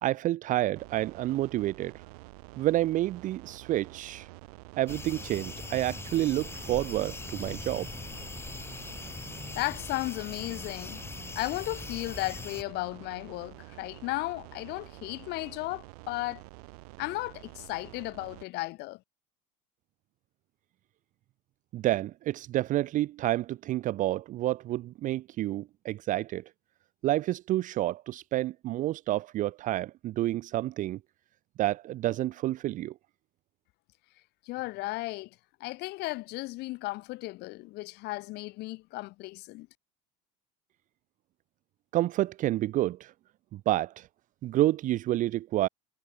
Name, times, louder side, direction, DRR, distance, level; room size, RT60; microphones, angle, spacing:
voice 1, 0.0-2.0 2.6-4.3 4.8-7.9 21.7-26.4 27.0-31.0 31.6-32.9 41.9-43.1 43.5-44.1 44.4-45.7, right 15 dB, 45° right, 0.6 m, -29 dB
sound 1, 0.8-18.4, right 26 dB, 80° right, 2.0 m, -49 dB
sound 2, 4.9-12.6, left 3 dB, 10° left, 2.0 m, -41 dB
voice 2, 9.5-11.0 11.3-16.4 17.0-19.0 34.4-35.3 35.6-39.7, left 21 dB, 60° left, 1.6 m, -35 dB
supercardioid pair, 110°, 19 cm